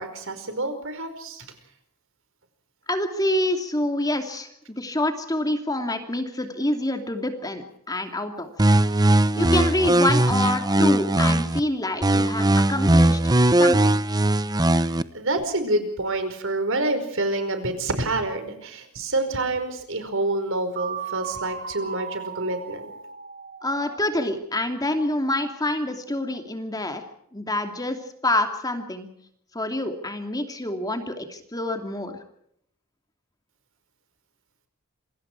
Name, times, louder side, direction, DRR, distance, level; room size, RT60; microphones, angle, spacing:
voice 1, 0.0-1.4 14.8-22.9, right 2 dB, 60° right, 8 dB, 5.0 m, -27 dB
voice 2, 2.9-8.7 9.4-13.2 13.6-14.0 23.6-27.0 27.3-28.0 28.2-29.1 29.5-32.2, left 1 dB, 15° left, 5 dB, 2.8 m, -27 dB
sound 1, 8.6-11.6 12.0-15.0, right 1 dB, 20° right, 0.9 m, -19 dB
sound 2, 20.8-24.6, right 7 dB, 45° right, 1.3 m, -36 dB
27.5 x 24.5 x 4.8 m, 0.71 s
head